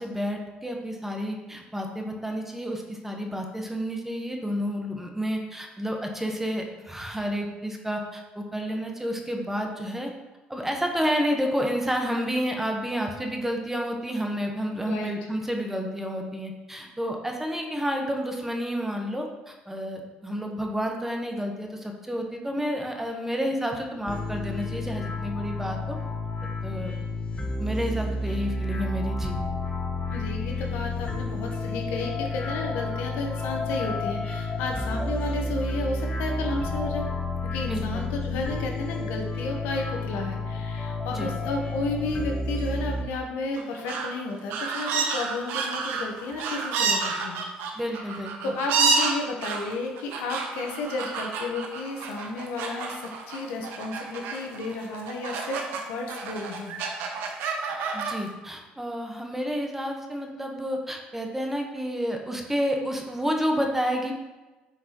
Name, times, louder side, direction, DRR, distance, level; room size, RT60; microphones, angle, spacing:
voice 1, 0.0-10.1 10.5-26.0 26.4-26.9 27.6-29.3 37.7-38.1 41.1-41.3 47.7-48.5 57.9-64.1, equal, 10° right, 2 dB, 1.0 m, -30 dB
sound 1, 24.1-43.1, left 2 dB, 30° left, 0.8 m, -31 dB
voice 2, 30.1-37.1 37.5-47.4 47.9-48.2 48.4-56.8, left 3 dB, 80° left, 2 dB, 1.0 m, -32 dB
sound 2, 43.5-44.1 44.5-55.8 56.1-58.1, right 5 dB, 80° right, 0.9 m, -29 dB
7.5 x 4.7 x 3.0 m, 1.2 s
supercardioid pair, 80°, 3 cm